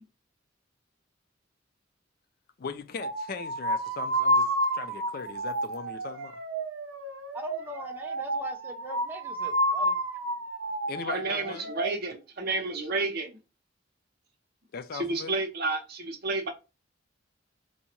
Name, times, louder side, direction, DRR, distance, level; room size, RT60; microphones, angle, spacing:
voice 1, 2.6-6.4 10.9-11.7 14.7-15.4, left 5 dB, 50° left, 0.4 m, -39 dB
sound 1, 3.0-11.9, right 1 dB, 80° right, 0.6 m, -30 dB
voice 2, 7.3-9.9, left 1 dB, 10° right, 0.6 m, -41 dB
voice 3, 11.0-13.4 14.9-16.5, right 3 dB, 50° right, 0.8 m, -31 dB
4.0 x 2.3 x 2.9 m
head